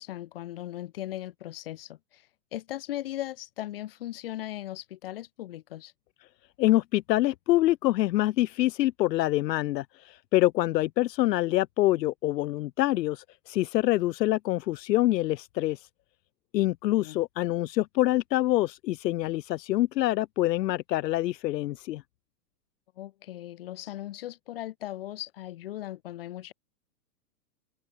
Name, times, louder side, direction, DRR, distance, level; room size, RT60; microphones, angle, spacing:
voice 1, 0.0-5.9 17.0-17.2 23.0-26.5, left 14 dB, 35° left, 1.3 m, -38 dB
voice 2, 6.6-15.8 16.5-22.0, left 16 dB, 80° left, 0.6 m, -26 dB
hypercardioid pair, 175°, 49 cm